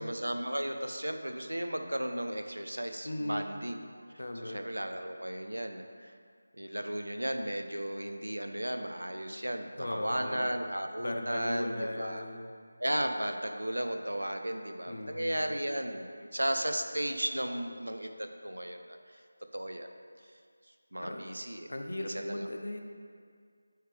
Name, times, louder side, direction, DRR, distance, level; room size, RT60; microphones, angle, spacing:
voice 1, 0.0-3.8 4.4-6.1 6.6-12.2 12.8-19.0 19.5-19.9 20.9-21.7 22.0-22.4, right 1 dB, 75° right, 6 dB, 0.5 m, -35 dB
voice 2, 3.0-3.6 4.2-4.6 9.8-10.6 11.0-12.5 14.9-15.5 21.0-21.4 21.7-22.8, left 1 dB, 60° left, 4 dB, 0.6 m, -38 dB
8.8 x 3.3 x 3.3 m, 2.1 s
figure-of-eight pair, 165°, 0 cm